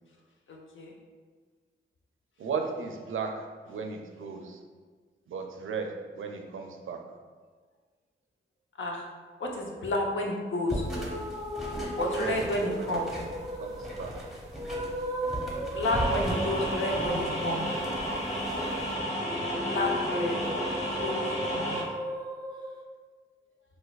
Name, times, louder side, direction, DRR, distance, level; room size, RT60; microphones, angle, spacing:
voice 1, 2.4-4.6 5.3-7.0 12.1-12.4 12.7-13.0 13.6-14.1 18.7-18.9, right 5 dB, 75° right, 3 dB, 0.4 m, -36 dB
voice 2, 9.4-10.8 12.0-13.0 15.7-17.6 19.6-20.3 21.0-21.2 21.5-21.8, left 1 dB, 70° left, 0 dB, 0.6 m, -30 dB
sound 1, 10.7-18.9, equal, ahead, 0.9 m, -38 dB
sound 2, 10.8-22.8, right 1 dB, 20° right, 0.5 m, -37 dB
sound 3, 15.8-21.8, equal, 35° left, 1.0 m, -32 dB
4.0 x 2.5 x 2.4 m, 1.5 s
cardioid pair, 45°, 21 cm